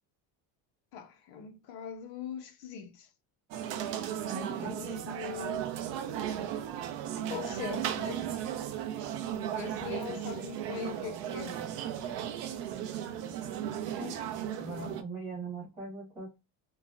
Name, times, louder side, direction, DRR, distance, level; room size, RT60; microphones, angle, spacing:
voice 1, 0.9-3.1 4.3-5.7 7.3-8.3 9.5-11.6, left 8 dB, 55° left, 0.5 m, -41 dB
sound 1, 3.5-15.0, right 10 dB, 75° right, 0.6 m, -36 dB
voice 2, 14.6-16.4, right 2 dB, 5° right, 1.3 m, -40 dB
3.1 x 2.1 x 2.3 m
cardioid pair, 175°, 45 cm